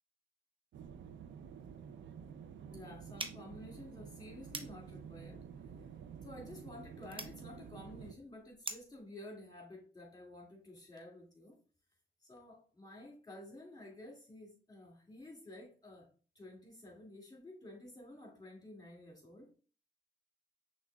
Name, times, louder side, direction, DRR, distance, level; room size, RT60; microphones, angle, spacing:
sound 1, 0.7-8.1, right 7 dB, 90° right, 0.4 m, -50 dB
voice 1, 2.7-5.4 6.2-11.6 12.2-16.1 16.4-19.5, left 1 dB, 20° left, -1 dB, 2.1 m, -52 dB
sound 2, 3.1-9.0, right 2 dB, 30° right, 0.8 m, -48 dB
6.0 x 3.2 x 2.3 m, 0.39 s
cardioid pair, 70°, 19 cm